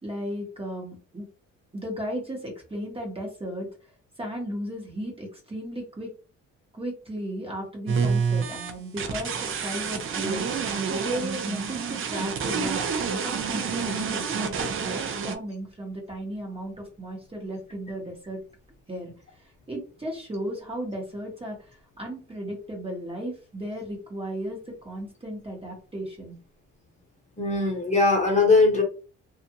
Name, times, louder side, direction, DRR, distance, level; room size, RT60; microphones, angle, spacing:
voice 1, 0.0-1.2 1.7-3.7 4.2-6.1 6.7-9.3 9.6-18.4 18.9-19.1 19.7-26.4, equal, 20° right, -1 dB, 1.0 m, -35 dB
sound 1, 7.9-15.4, right 6 dB, 45° right, 0.5 m, -28 dB
voice 2, 27.4-28.8, left 3 dB, 25° left, 0 dB, 1.1 m, -20 dB
2.4 x 2.4 x 2.8 m, 0.35 s
cardioid pair, 90°, 30 cm